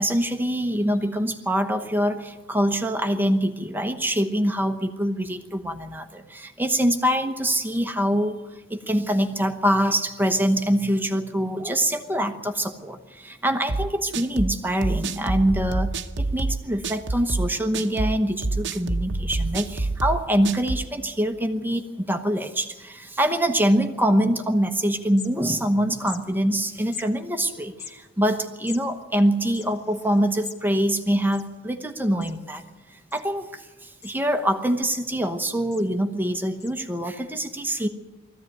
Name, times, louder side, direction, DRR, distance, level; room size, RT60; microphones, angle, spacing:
voice 1, 0.0-15.9 16.2-32.6 32.9-37.9, equal, 10° right, 6 dB, 1.0 m, -24 dB
sound 1, 13.7-20.9, right 2 dB, 60° right, 1.0 m, -27 dB
sound 2, 24.6-24.7 24.9-25.7 26.0-26.2 26.9-27.1 27.7-30.6 30.9-31.0 31.2-31.9 32.2-32.6 33.1-33.6 34.0-34.2 34.6-35.3 35.7-35.9 36.6-36.7, left 8 dB, 55° left, 1.9 m, -41 dB
21.5 x 14.5 x 9.1 m, 1.2 s
head